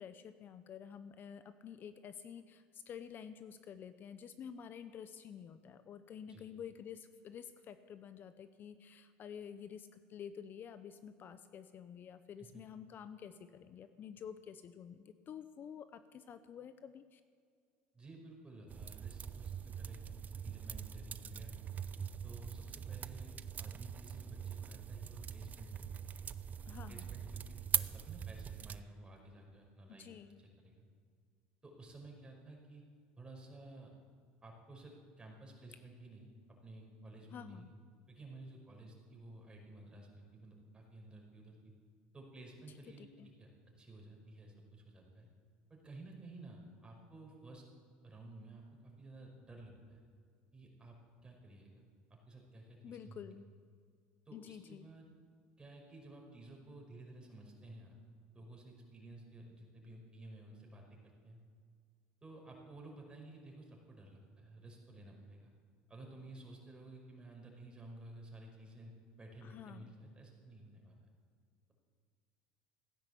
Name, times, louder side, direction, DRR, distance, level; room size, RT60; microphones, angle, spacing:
voice 1, 0.0-17.2 26.7-27.1 29.9-30.4 37.3-37.7 43.0-43.3 52.8-53.5 54.3-54.9 69.4-70.0, left 8 dB, 45° left, 11 dB, 0.8 m, -50 dB
voice 2, 17.9-21.6 22.2-25.9 26.9-30.1 30.4-30.9 31.6-32.8 33.2-33.9 34.4-37.7 38.1-41.7 42.1-43.5 43.8-45.3 45.7-47.6 48.0-50.0 50.5-51.8 52.1-53.3 54.3-55.1 55.6-57.9 58.3-61.4 62.2-65.5 65.9-71.0, right 2 dB, 20° right, 0 dB, 5.4 m, -54 dB
sound 1, 18.7-28.8, right 7 dB, 35° right, 0.6 m, -42 dB
16.0 x 10.5 x 8.2 m, 2.1 s
supercardioid pair, 85°, 5 cm